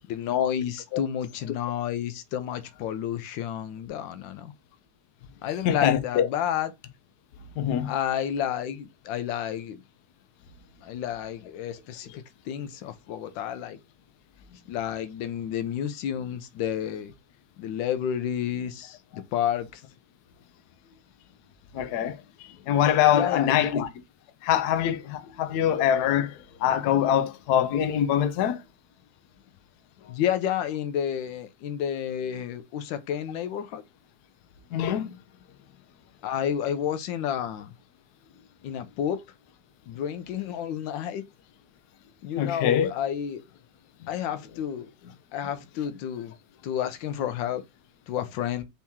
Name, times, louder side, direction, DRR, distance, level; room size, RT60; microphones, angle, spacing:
voice 1, 0.1-4.5 5.4-6.7 7.8-9.8 10.8-13.8 14.7-17.1 17.6-19.8 23.1-23.8 30.1-33.8 36.2-37.7 38.6-39.2 39.9-41.2 42.2-43.4 44.1-44.9 45.3-46.3 46.6-47.6 48.1-48.6, left 9 dB, 85° left, 1.3 m, -30 dB
voice 2, 5.6-6.3 7.6-7.9 21.7-22.2 22.7-23.9 24.4-28.6 34.7-35.2 42.4-42.9, left 10 dB, 70° left, 1.0 m, -24 dB
4.3 x 2.9 x 3.5 m
omnidirectional pair, 2.0 m